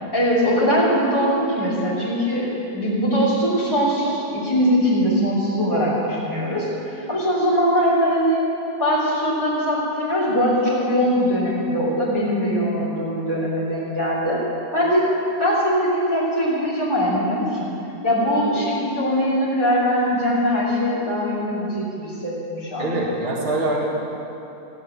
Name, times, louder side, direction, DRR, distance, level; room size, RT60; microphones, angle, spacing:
voice 1, 0.1-2.5 2.7-8.4 8.8-14.4 14.7-15.1 15.4-17.7 18.0-22.9, equal, 15° left, -8 dB, 3.3 m, -21 dB
voice 2, 22.8-23.9, right 2 dB, 30° right, -4 dB, 2.1 m, -23 dB
16.0 x 8.5 x 8.8 m, 2.9 s
omnidirectional pair, 1.8 m